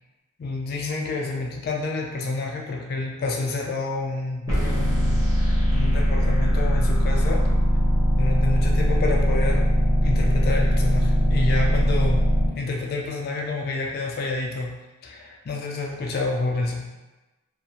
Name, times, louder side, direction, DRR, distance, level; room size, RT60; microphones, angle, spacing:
voice 1, 0.4-7.4 8.2-9.7 10.0-12.3 12.6-14.7 15.0-16.9, left 3 dB, 45° left, 0 dB, 0.3 m, -29 dB
sound 1, 4.5-12.5, equal, 15° right, 0.6 m, -20 dB
2.4 x 2.0 x 2.8 m, 1.1 s
head